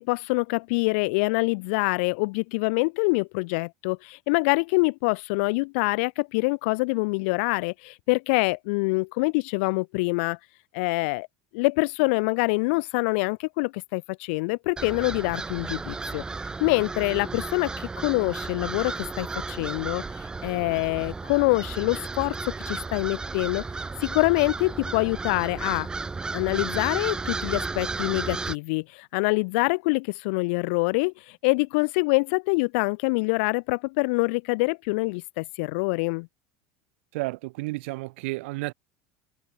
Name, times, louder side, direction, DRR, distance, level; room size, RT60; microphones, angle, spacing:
voice 1, 0.0-10.4 10.7-11.3 11.5-16.2 16.6-20.0 20.4-23.6 24.0-25.9 26.3-31.1 31.4-36.3, left 29 dB, 75° left, 1.4 m, -25 dB
sound 1, 14.8-28.5, right 4 dB, 10° right, 1.8 m, -33 dB
voice 2, 37.1-38.7, right 23 dB, 85° right, 3.2 m, -32 dB
cardioid pair, 160°, 7 cm